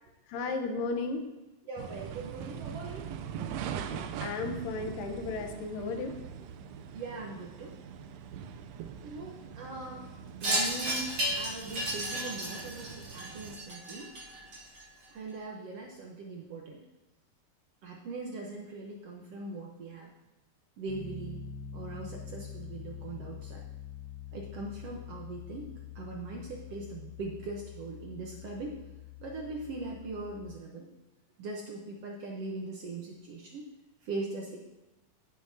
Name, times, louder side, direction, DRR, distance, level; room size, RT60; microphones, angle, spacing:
voice 1, 0.3-1.2 3.8-6.1, left 3 dB, 85° left, 5 dB, 2.7 m, -34 dB
voice 2, 1.7-3.1 6.9-7.7 9.0-14.1 15.1-16.8 17.8-20.1 20.8-21.4 21.7-23.6 24.3-25.7 25.9-28.7 29.2-30.9 31.4-33.7 34.0-34.6, right 3 dB, 65° right, -1 dB, 1.6 m, -40 dB
sound 1, 1.8-13.6, right 8 dB, 90° right, 1.5 m, -42 dB
Wind chime, 10.4-15.0, right 1 dB, 35° right, 3.6 m, -33 dB
Piano, 20.9-30.5, left 8 dB, 40° left, 1.0 m, -45 dB
16.5 x 7.0 x 2.7 m, 1.0 s
omnidirectional pair, 3.8 m